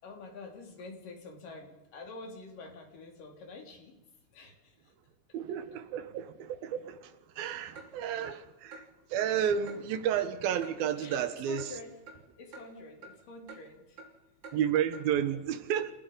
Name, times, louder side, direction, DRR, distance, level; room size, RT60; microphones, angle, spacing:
voice 1, 0.0-4.0 4.3-4.9 11.0-11.9 12.4-14.0, left 3 dB, 55° left, 4.8 m, -48 dB
voice 2, 5.3-11.7 14.5-15.9, right 9 dB, 70° right, 2.9 m, -32 dB
Clock, 7.8-7.9 8.2-8.3 8.7-8.8 9.2-9.3 9.7-9.8 10.1-10.3 10.6-10.7 11.1-11.2 11.6-11.7 12.1-12.2 12.5-12.6 13.0-13.1 13.5-13.6 14.0-14.1 14.4-14.6 14.9-15.0, right 3 dB, 30° right, 3.5 m, -47 dB
29.5 x 17.0 x 5.5 m
omnidirectional pair, 4.6 m